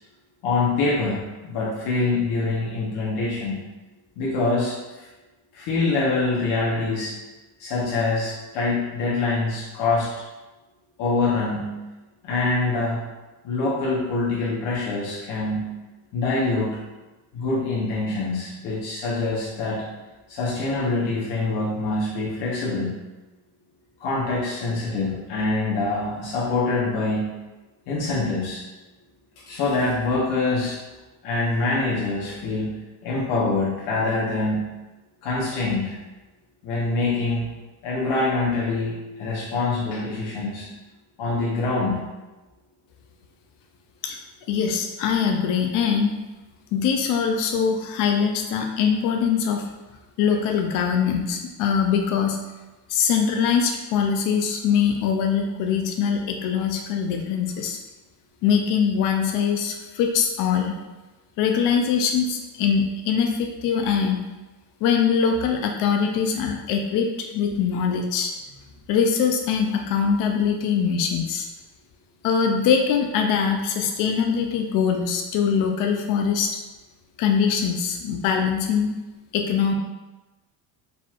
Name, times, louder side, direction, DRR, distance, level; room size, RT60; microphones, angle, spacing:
voice 1, 0.4-3.6 4.2-5.1 5.5-7.2 7.6-10.1 11.0-11.8 12.2-13.0 13.4-15.7 16.1-16.8 17.3-19.9 20.3-22.9 24.0-27.3 27.9-28.6 29.5-30.8 31.2-32.8 33.0-34.7 35.2-36.0 36.6-37.5 37.8-40.7 41.2-42.0, left 3 dB, 70° left, -7 dB, 1.2 m, -25 dB
voice 2, 44.5-46.1 46.7-49.7 50.2-52.4 52.9-57.8 58.4-60.8 61.4-64.2 64.8-68.3 68.9-71.5 72.2-76.5 77.2-78.9 79.3-79.7, left 7 dB, 55° left, 3 dB, 0.5 m, -22 dB
4.4 x 4.0 x 2.4 m, 1.1 s
cardioid pair, 150°, 40 cm